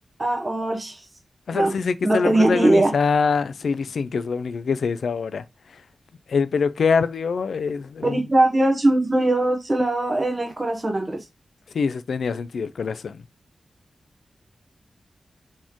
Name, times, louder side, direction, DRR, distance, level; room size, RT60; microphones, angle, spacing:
voice 1, 0.2-1.0 1.5-1.7 2.0-2.9 8.0-11.2, right 1 dB, 20° right, 0.8 m, -20 dB
voice 2, 1.5-5.4 6.3-8.2 11.7-13.2, left 5 dB, 85° left, 0.3 m, -24 dB
4.2 x 3.0 x 3.6 m
wide cardioid pair, 150°, 0 cm